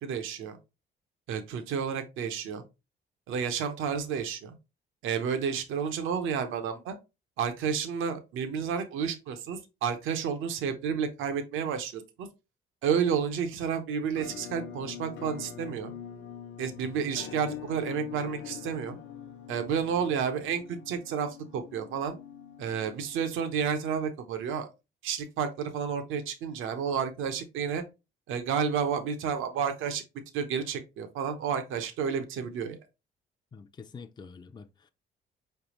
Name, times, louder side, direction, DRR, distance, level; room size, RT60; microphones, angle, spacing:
voice 1, 0.0-0.6 1.3-2.6 3.3-4.5 5.0-7.0 7.4-12.3 12.8-15.9 16.6-19.0 19.5-22.2 22.6-24.7 25.0-27.8 28.3-30.0 30.3-32.8, right 7 dB, 90° right, 0.8 m, -31 dB
Musical instrument, 14.2-23.9, left 9 dB, 65° left, 0.7 m, -44 dB
voice 2, 33.5-34.9, left 5 dB, 20° left, 0.4 m, -47 dB
4.9 x 3.3 x 3.0 m
cardioid pair, 90°, 20 cm